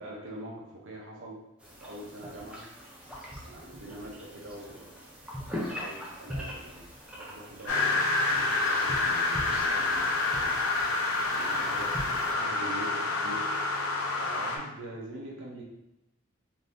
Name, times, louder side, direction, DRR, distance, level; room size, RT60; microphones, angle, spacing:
voice 1, 0.0-1.4 1.8-2.7 3.4-5.1 5.7-6.9 7.2-10.6 11.3-12.0 12.3-13.4 14.2-15.6, right 1 dB, 65° right, -3 dB, 0.6 m, -44 dB
sound 1, 1.6-12.3, equal, 5° right, 0.5 m, -41 dB
sound 2, 7.7-14.6, left 3 dB, 85° left, 0.6 m, -28 dB
2.6 x 2.6 x 3.4 m, 0.91 s
head